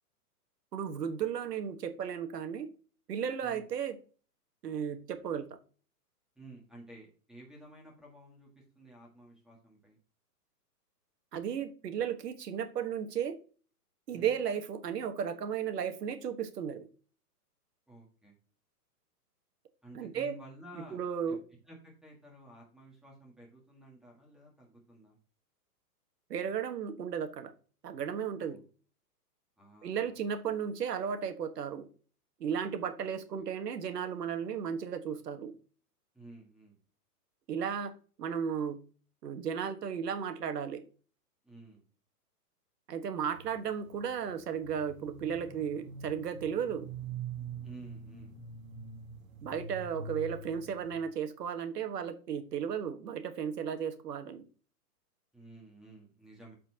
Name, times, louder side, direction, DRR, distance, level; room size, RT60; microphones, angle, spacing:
voice 1, 0.7-2.7 3.1-4.0 4.6-5.5 11.3-13.3 14.1-16.9 19.9-20.3 20.9-21.4 26.3-27.5 27.8-28.6 29.8-31.9 32.4-35.5 37.5-38.8 39.2-40.8 42.9-46.9 49.4-54.4, right 7 dB, 80° right, 8 dB, 1.5 m, -34 dB
voice 2, 6.3-10.0 14.1-14.4 17.9-18.4 19.8-21.0 21.3-21.4 21.6-25.2 28.4-28.6 29.6-30.2 36.1-36.8 41.4-41.8 47.6-48.4 50.0-50.1 55.3-56.5, right 1 dB, ahead, -2 dB, 1.5 m, -52 dB
sound 1, 43.2-51.0, right 5 dB, 60° right, 2.0 m, -44 dB
13.0 x 4.4 x 2.8 m, 0.39 s
hypercardioid pair, 160°, 47 cm